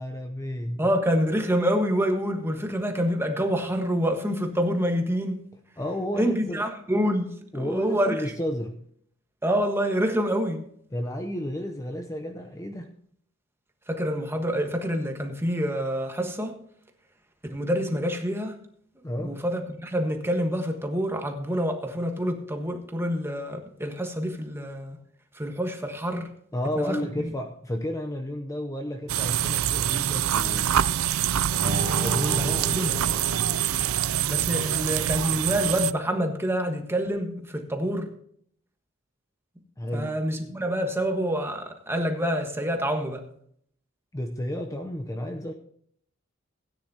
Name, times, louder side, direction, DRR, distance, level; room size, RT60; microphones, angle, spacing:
voice 1, 0.0-0.9 5.8-6.6 7.5-8.8 10.9-13.0 19.0-19.4 26.5-30.7 32.0-32.7 34.5-34.7 39.8-40.1 44.1-45.5, left 1 dB, 15° left, 0.7 m, -32 dB
voice 2, 0.8-5.4 6.2-7.3 7.5-8.1 9.4-10.7 13.9-16.6 17.5-18.6 19.2-25.0 25.3-26.3 26.9-27.3 32.3-32.9 34.3-38.1 39.9-43.3, equal, 10° right, 1.4 m, -27 dB
sound 1, 29.1-35.9, right 10 dB, 85° right, 0.4 m, -25 dB
sound 2, 31.5-34.2, right 1 dB, 45° right, 2.8 m, -34 dB
16.5 x 9.7 x 2.8 m
head